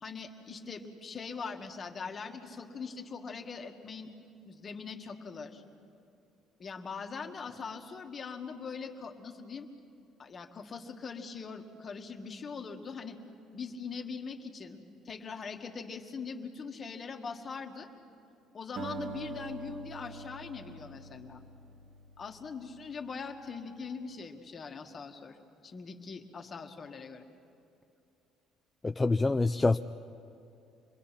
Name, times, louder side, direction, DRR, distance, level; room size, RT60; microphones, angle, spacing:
voice 1, 0.0-4.1 4.5-5.6 6.6-9.7 10.2-13.2 13.5-14.8 15.1-17.9 18.5-21.4 22.2-25.4 25.6-27.3, left 5 dB, 35° left, 4 dB, 1.8 m, -41 dB
Acoustic guitar, 18.8-23.2, right 4 dB, 70° right, 2.2 m, -44 dB
voice 2, 28.8-29.8, left 3 dB, 15° left, 8 dB, 0.4 m, -26 dB
27.0 x 21.5 x 5.9 m, 2.6 s
cardioid pair, 95°, 0 cm